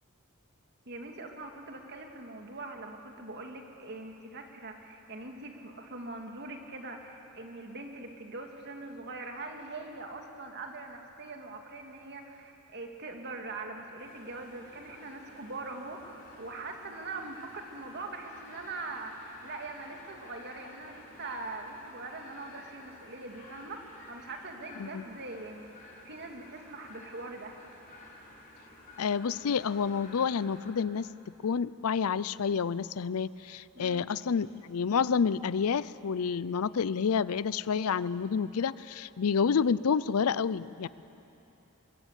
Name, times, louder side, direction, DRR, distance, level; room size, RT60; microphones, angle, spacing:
voice 1, 0.9-27.6 33.7-34.1, right 3 dB, 50° right, 3 dB, 2.4 m, -42 dB
sound 1, 14.0-30.7, left 1 dB, 40° left, 5.2 m, -52 dB
voice 2, 29.0-31.1 31.4-40.9, left 6 dB, 75° left, 18 dB, 0.5 m, -29 dB
23.5 x 22.0 x 8.3 m, 3.0 s
head